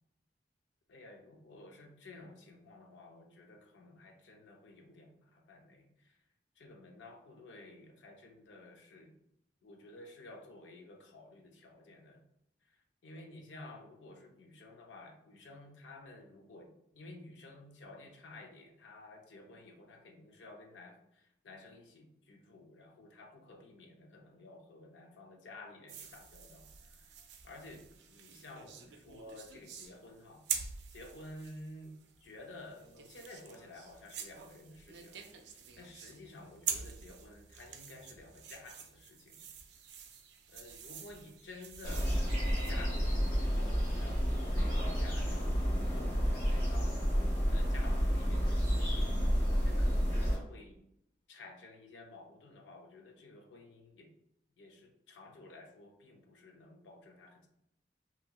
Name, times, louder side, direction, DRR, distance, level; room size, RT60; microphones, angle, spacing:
voice 1, 0.9-6.2 6.6-9.2 9.6-12.2 12.7-27.1 27.4-30.5 30.9-39.5 40.5-42.2 42.7-45.6 45.9-47.1 47.5-50.8 51.3-54.1 54.6-57.5, left 2 dB, 85° left, 2 dB, 0.5 m, -53 dB
sound 1, 25.9-42.7, right 7 dB, 75° right, 0.4 m, -46 dB
sound 2, 41.8-50.4, equal, 40° left, 1.4 m, -30 dB
2.7 x 2.7 x 2.3 m, 0.80 s
head